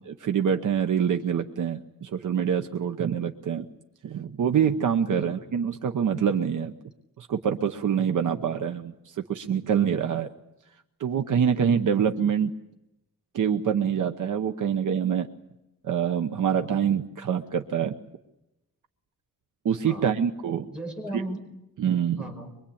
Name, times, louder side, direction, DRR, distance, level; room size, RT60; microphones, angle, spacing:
voice 1, 0.2-3.7 4.0-6.7 7.2-10.3 11.0-12.5 13.3-15.3 15.8-17.9 19.6-20.7 21.8-22.2, right 8 dB, 65° right, 6 dB, 1.0 m, -25 dB
voice 2, 5.1-5.5 8.4-8.7 19.8-20.1 20.7-21.4 22.2-22.5, right 1 dB, 5° right, 1 dB, 4.9 m, -37 dB
24.0 x 23.5 x 8.7 m, 0.92 s
wide cardioid pair, 175°, 34 cm